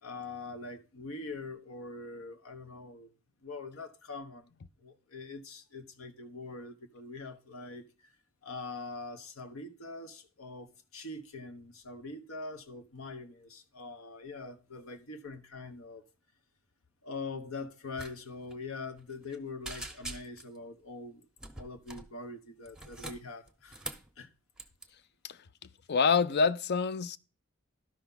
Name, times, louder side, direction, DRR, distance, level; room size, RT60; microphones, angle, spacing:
voice 1, 0.0-3.1 3.4-4.5 4.8-8.1 8.4-16.0 17.0-21.2 21.6-23.8 24.2-24.3, left 3 dB, 85° left, 1.2 m, -43 dB
sound 1, 17.9-18.1 18.4-18.6 19.0-19.4 19.6-20.6 21.4-22.1 22.7-24.1 24.6-24.9, right 2 dB, 5° right, 0.8 m, -43 dB
voice 2, 25.9-27.2, left 5 dB, 55° left, 0.5 m, -26 dB
12.5 x 5.7 x 4.0 m
head